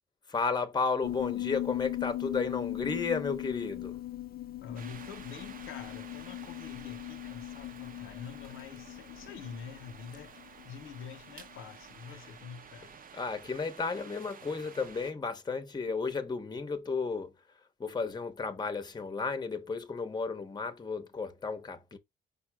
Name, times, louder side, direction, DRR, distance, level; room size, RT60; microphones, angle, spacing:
voice 1, 0.3-4.0 13.1-17.3 17.8-22.0, left 4 dB, 20° left, 0.8 m, -33 dB
Piano, 1.0-11.7, left 15 dB, 50° left, 0.5 m, -39 dB
voice 2, 4.6-10.4 10.6-13.0, left 6 dB, 85° left, 0.7 m, -46 dB
sound 1, 4.8-15.1, right 6 dB, 45° right, 0.7 m, -52 dB
5.3 x 2.0 x 4.7 m
cardioid pair, 90°, 20 cm